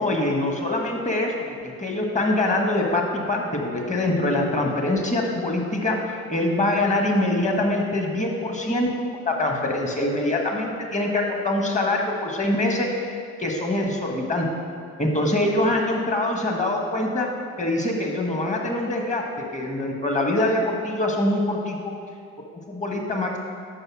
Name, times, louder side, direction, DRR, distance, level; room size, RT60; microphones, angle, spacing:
voice 1, 0.0-1.3 1.8-8.9 9.2-14.4 15.0-17.3 17.6-19.2 19.5-21.8 22.7-23.4, left 1 dB, 20° left, 1 dB, 1.4 m, -24 dB
5.5 x 4.8 x 6.2 m, 2.1 s
hypercardioid pair, 60°, 32 cm